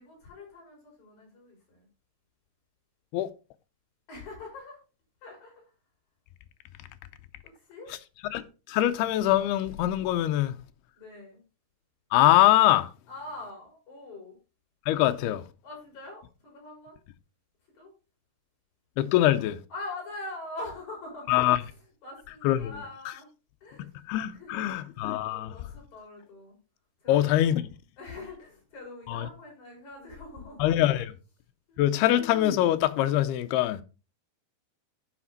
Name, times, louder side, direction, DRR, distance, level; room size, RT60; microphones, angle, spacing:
voice 1, 0.0-1.9 4.1-4.8 5.2-5.7 7.4-7.9 11.0-11.4 13.1-14.4 15.6-17.0 17.7-17.9 19.7-21.3 21.6-21.7 22.0-23.3 23.6-23.9 24.3-24.9 25.3-26.6 27.0-27.6 28.0-31.0 31.7-32.1, left 2 dB, 40° left, 6.8 m, -43 dB
voice 2, 8.3-10.5 12.1-12.9 14.9-15.4 19.0-19.6 21.3-21.6 22.4-22.7 24.1-25.5 27.1-27.6 29.1-29.3 30.6-31.1 31.8-33.8, left 13 dB, 80° left, 2.5 m, -23 dB
12.0 x 5.0 x 3.9 m
omnidirectional pair, 4.9 m